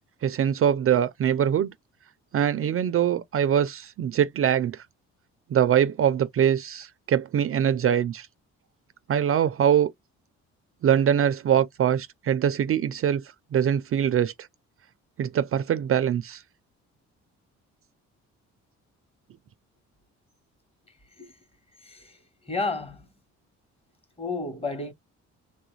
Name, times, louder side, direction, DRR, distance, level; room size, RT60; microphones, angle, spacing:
voice 1, 0.2-1.7 2.3-4.8 5.5-8.3 9.1-9.9 10.8-13.2 13.5-14.3 15.2-16.4, right 9 dB, 45° right, 0.4 m, -23 dB
voice 2, 22.5-23.0 24.2-24.9, left 3 dB, 20° left, 1.1 m, -31 dB
3.2 x 2.4 x 3.1 m
cardioid pair, 90°, 30 cm